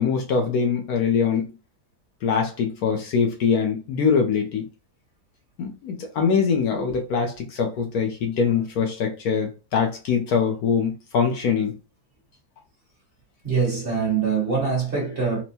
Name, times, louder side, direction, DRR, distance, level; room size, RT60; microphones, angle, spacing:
voice 1, 0.0-1.6 2.2-4.7 5.6-11.8, left 6 dB, 70° left, 1.1 m, -23 dB
voice 2, 13.4-15.4, right 5 dB, 35° right, 1.5 m, -24 dB
4.4 x 2.1 x 2.7 m
omnidirectional pair, 1.8 m